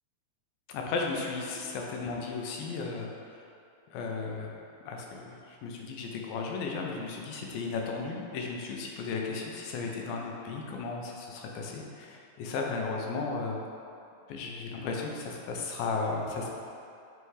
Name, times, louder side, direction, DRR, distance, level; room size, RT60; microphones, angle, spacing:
voice 1, 0.7-3.1 3.9-4.6 4.9-13.6 14.3-16.5, left 4 dB, 80° left, 0 dB, 2.6 m, -35 dB
9.7 x 3.4 x 4.8 m, 2.6 s
omnidirectional pair, 4.1 m